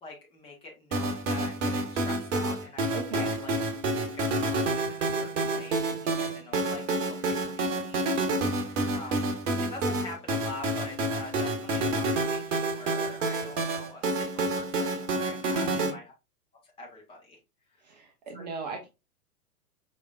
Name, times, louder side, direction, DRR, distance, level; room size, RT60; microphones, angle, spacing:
voice 1, 0.0-2.9 3.2-3.5 4.1-9.3 9.6-16.1 16.6-17.4 17.7-17.8 18.3-18.4, left 3 dB, 10° left, -1 dB, 0.8 m, -45 dB
sound 1, 0.9-15.9, right 2 dB, 50° right, 1.0 m, -29 dB
voice 2, 2.9-3.3 15.5-16.0 17.8-18.9, right 4 dB, 30° right, 2 dB, 0.6 m, -38 dB
4.9 x 3.4 x 2.3 m, 0.25 s
figure-of-eight pair, 110°, 47 cm